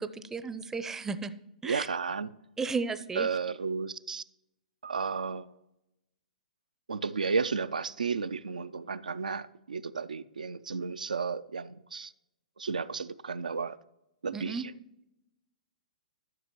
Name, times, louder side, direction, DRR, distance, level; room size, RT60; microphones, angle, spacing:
voice 1, 0.0-1.3 1.6-1.9 2.6-3.3 14.3-14.6, right 4 dB, 10° right, 0.5 m, -34 dB
voice 2, 1.6-2.3 3.2-4.2 4.8-5.5 6.9-12.1 12.6-13.8 14.2-14.7, right 5 dB, 80° right, 0.4 m, -33 dB
12.5 x 6.9 x 3.0 m
figure-of-eight pair, 115°, 4 cm